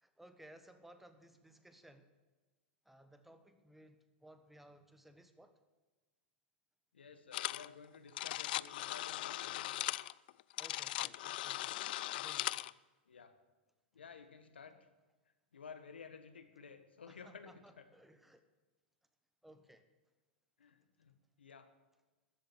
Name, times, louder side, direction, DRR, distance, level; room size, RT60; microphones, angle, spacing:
voice 1, 0.0-2.1 2.8-5.6 10.6-11.8 12.1-12.7 17.1-18.4 19.4-19.8, right 1 dB, 5° right, 9 dB, 1.2 m, -60 dB
voice 2, 6.9-9.9 13.0-13.3 13.9-14.8 15.5-17.9 20.6-21.7, left 6 dB, 85° left, 9 dB, 1.4 m, -54 dB
sound 1, 7.3-7.7 7.9-12.7, left 16 dB, 60° left, 0.3 m, -39 dB
13.5 x 7.9 x 8.8 m, 1.2 s
hypercardioid pair, 105°, 6 cm